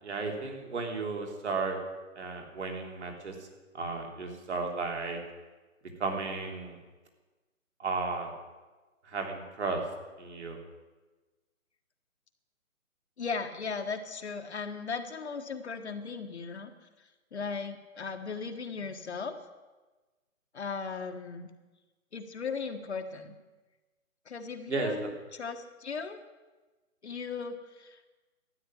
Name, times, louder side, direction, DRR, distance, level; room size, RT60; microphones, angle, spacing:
voice 1, 0.0-1.8 2.2-3.5 3.7-5.2 6.0-6.8 7.8-8.3 9.0-9.8 10.2-10.6 24.7-24.9, right 4 dB, 55° right, 2 dB, 3.5 m, -34 dB
voice 2, 13.2-16.7 17.3-19.4 20.5-21.5 22.1-23.3 24.3-26.2 27.0-28.1, left 5 dB, 50° left, 6 dB, 1.4 m, -37 dB
13.0 x 9.5 x 9.9 m, 1.2 s
hypercardioid pair, 170°, 42 cm